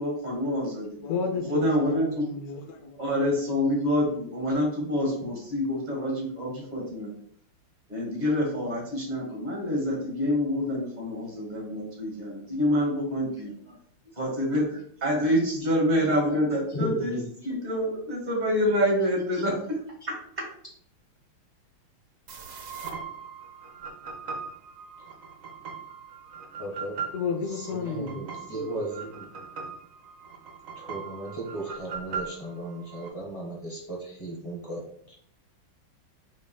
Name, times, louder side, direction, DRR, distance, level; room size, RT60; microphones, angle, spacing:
voice 1, 0.0-1.0 1.5-2.3 3.0-7.1 7.9-13.8 14.1-17.2 17.4-19.8 20.1-20.2, equal, 25° right, 1.5 m, -27 dB
voice 2, 1.0-3.0 27.1-28.3, left 4 dB, 65° left, 0.9 m, -32 dB
voice 3, 16.7-17.2 19.3-19.4 26.6-27.0 27.6-29.3 30.8-34.8, right 1 dB, 15° left, 1.2 m, -35 dB
sound 1, 22.3-33.1, right 5 dB, 70° right, 0.7 m, -40 dB
6.3 x 3.5 x 2.3 m
omnidirectional pair, 2.3 m